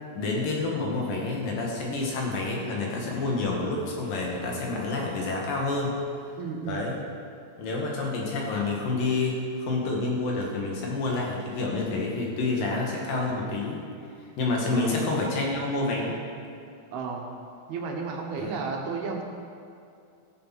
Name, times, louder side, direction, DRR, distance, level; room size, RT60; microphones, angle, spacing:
voice 1, 0.1-6.0 6.7-7.0 7.6-13.8 14.4-16.2 18.4-18.6, left 3 dB, 65° left, -1 dB, 3.5 m, -28 dB
voice 2, 6.4-6.9 14.7-15.0 16.9-17.3 17.7-19.2, right 5 dB, 80° right, 1 dB, 3.3 m, -33 dB
14.5 x 8.6 x 6.0 m, 2.5 s
omnidirectional pair, 4.4 m